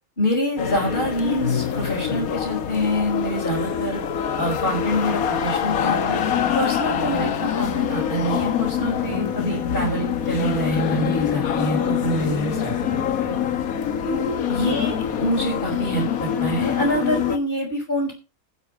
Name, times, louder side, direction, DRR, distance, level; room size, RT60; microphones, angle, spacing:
voice 1, 0.2-4.0 4.4-6.2 6.5-13.4 14.0-18.1, equal, 35° left, -4 dB, 5.0 m, -26 dB
sound 1, 0.6-17.4, left 9 dB, 85° left, 1.5 m, -25 dB
sound 2, 4.9-16.6, right 6 dB, 70° right, 2.1 m, -39 dB
12.0 x 11.0 x 5.0 m, 0.34 s
omnidirectional pair, 1.5 m